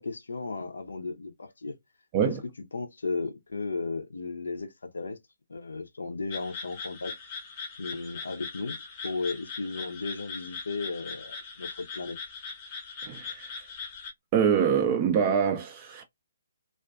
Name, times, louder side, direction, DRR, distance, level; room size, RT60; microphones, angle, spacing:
voice 1, 0.0-1.8 2.2-2.4 2.7-5.2 5.5-7.2 7.8-8.8 9.0-12.2, left 3 dB, 65° left, 0.4 m, -35 dB
sound 1, 6.3-14.1, left 5 dB, 30° left, 0.7 m, -40 dB
voice 2, 13.1-13.6 14.3-16.0, right 7 dB, 25° right, 0.3 m, -25 dB
2.4 x 2.2 x 2.3 m
figure-of-eight pair, 135°, 0 cm